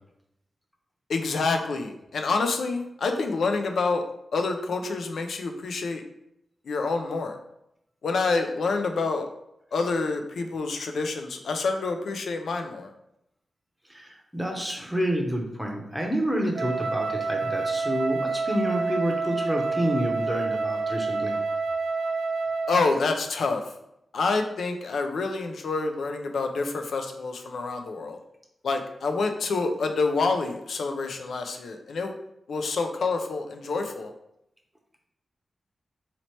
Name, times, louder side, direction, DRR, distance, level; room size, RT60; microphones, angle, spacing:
voice 1, 1.1-4.0 4.3-6.0 6.7-7.4 8.0-9.3 9.7-12.9 22.7-23.6 24.1-28.2 28.6-32.1 32.5-34.1, left 3 dB, 80° left, 5 dB, 0.4 m, -27 dB
voice 2, 13.9-21.4, equal, 5° right, 0 dB, 0.7 m, -28 dB
Wind instrument woodwind instrument, 16.5-23.0, right 4 dB, 80° right, 0.4 m, -28 dB
4.1 x 2.9 x 3.1 m, 0.81 s
wide cardioid pair, 120°, 0 cm